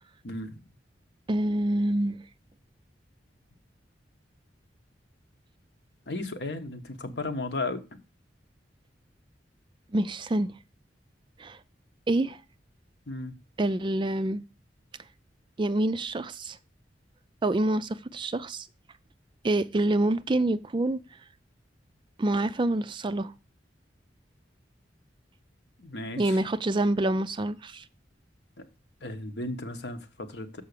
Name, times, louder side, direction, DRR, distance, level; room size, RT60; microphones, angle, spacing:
voice 1, 0.2-0.6 6.1-7.8 13.1-13.3 25.8-26.4 28.6-28.7 29.0-30.6, left 2 dB, 65° left, 1.1 m, -35 dB
voice 2, 1.3-2.2 9.9-10.5 11.4-11.6 12.1-12.4 13.6-14.4 15.6-16.6 17.4-18.7 19.4-21.0 22.2-23.3 26.2-27.8, right 1 dB, 25° right, 0.4 m, -26 dB
7.0 x 5.5 x 6.7 m
head